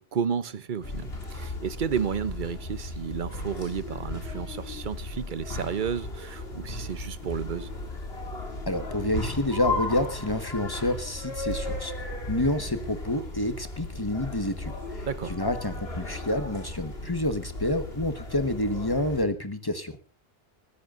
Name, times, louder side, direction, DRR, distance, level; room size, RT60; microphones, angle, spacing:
voice 1, 0.0-7.7 15.1-15.4, right 7 dB, 50° right, 0.9 m, -32 dB
sound 1, 0.8-19.2, left 2 dB, 60° left, 3.1 m, -35 dB
voice 2, 8.7-20.0, left 1 dB, 20° left, 1.3 m, -29 dB
23.0 x 14.0 x 2.6 m
omnidirectional pair, 1.1 m